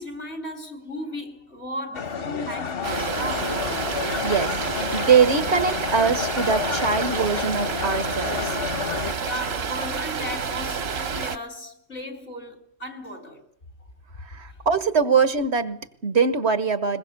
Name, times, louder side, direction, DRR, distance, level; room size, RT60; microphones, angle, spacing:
voice 1, 0.0-3.6 3.9-5.1 9.2-13.4 14.5-14.6, left 1 dB, 90° left, 4.0 m, -36 dB
sound 1, 1.9-9.1, left 6 dB, 65° left, 1.3 m, -30 dB
sound 2, 2.8-11.4, right 6 dB, 70° right, 1.3 m, -29 dB
voice 2, 4.2-4.6 4.9-8.6 14.3-17.0, right 5 dB, 90° right, 1.7 m, -22 dB
21.5 x 21.5 x 6.8 m
omnidirectional pair, 1.1 m